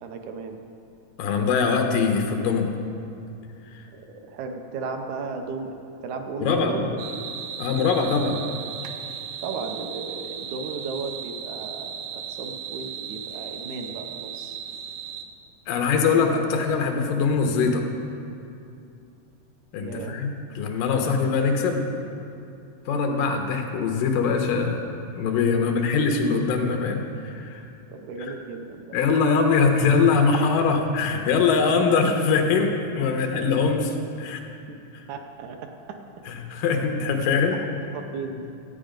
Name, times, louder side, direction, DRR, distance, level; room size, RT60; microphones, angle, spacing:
voice 1, 0.0-0.6 3.9-5.7 6.0-7.3 7.8-8.6 9.4-14.6 19.8-20.2 25.6-25.8 27.9-29.0 30.7-30.8 33.3-33.7 34.3-34.4 34.7-34.8 35.1-36.0 36.4-36.5 37.9-38.5, right 4 dB, 70° right, 4 dB, 2.0 m, -35 dB
voice 2, 1.2-2.7 3.7-3.8 6.4-6.8 7.6-8.4 15.7-17.9 19.7-21.9 22.9-27.6 28.9-33.9 34.2-34.4 36.3-37.6, left 5 dB, 90° left, 3 dB, 2.6 m, -22 dB
sound 1, 7.0-15.2, right 8 dB, 90° right, 1.5 m, -36 dB
13.5 x 8.8 x 5.1 m, 2.6 s
omnidirectional pair, 3.8 m